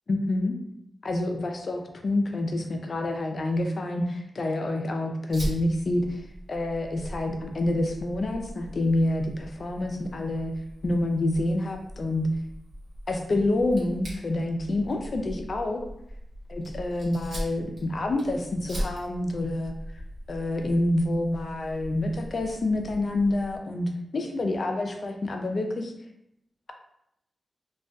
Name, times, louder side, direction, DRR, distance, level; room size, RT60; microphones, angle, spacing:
voice 1, 0.1-0.6 1.0-6.2 6.5-10.5 10.8-12.3 13.1-15.8 16.5-19.7 20.3-25.9, left 2 dB, 60° left, 3 dB, 0.4 m, -27 dB
Fire, 5.3-23.6, equal, 75° right, 1.0 m, -40 dB
2.5 x 2.2 x 2.2 m, 0.79 s
cardioid pair, 70°, 0 cm